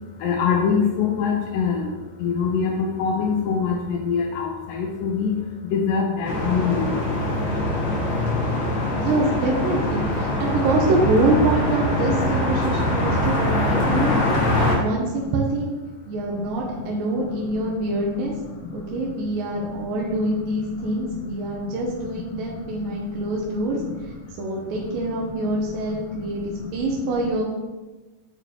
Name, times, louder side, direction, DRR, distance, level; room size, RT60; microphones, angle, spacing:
voice 1, 0.0-7.1 16.4-16.5 18.5-18.9 19.7-20.1 20.3-20.4 20.8-20.9 21.4-21.5 22.0-23.3 23.8-23.9 25.0-25.1 25.9-26.3, left 6 dB, 85° left, 1 dB, 2.3 m, -25 dB
sound 1, 6.2-14.7, left 1 dB, 60° left, 1.1 m, -23 dB
voice 2, 8.9-15.7 16.1-18.3 18.7-24.1 24.4-27.4, right 2 dB, 85° right, -2 dB, 2.5 m, -25 dB
9.7 x 4.2 x 2.8 m, 1.2 s
omnidirectional pair, 3.9 m